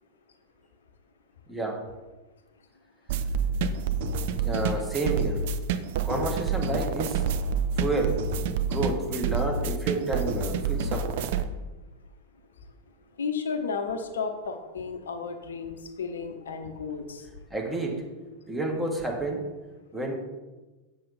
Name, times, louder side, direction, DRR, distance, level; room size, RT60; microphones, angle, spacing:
voice 1, 1.5-1.8 4.4-5.4 6.0-7.2 7.8-8.2 8.7-11.3 17.5-18.0 18.5-19.4 19.9-20.1, right 2 dB, 10° right, 0 dB, 1.9 m, -30 dB
sound 1, 3.1-11.4, right 5 dB, 50° right, 0.5 m, -28 dB
voice 2, 13.2-17.3, left 5 dB, 65° left, 7 dB, 0.7 m, -33 dB
7.4 x 7.0 x 4.1 m, 1.2 s
figure-of-eight pair, 90°, 0 cm